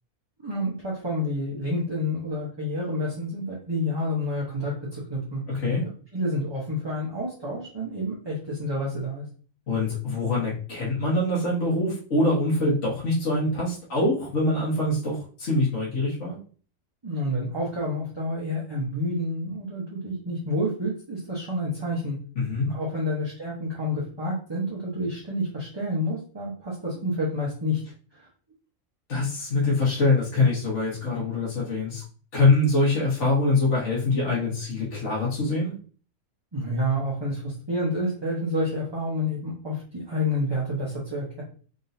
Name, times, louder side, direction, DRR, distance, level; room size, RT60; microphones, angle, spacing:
voice 1, 0.4-5.4 5.8-9.2 17.0-22.2 22.6-27.8 28.1-28.3 36.5-41.4, left 1 dB, 20° right, -6 dB, 0.9 m, -29 dB
voice 2, 5.5-5.9 9.7-16.4 22.4-22.7 29.1-32.0 32.3-35.7, left 2 dB, 55° left, -7 dB, 1.7 m, -24 dB
3.8 x 3.7 x 2.7 m, 0.42 s
omnidirectional pair, 1.5 m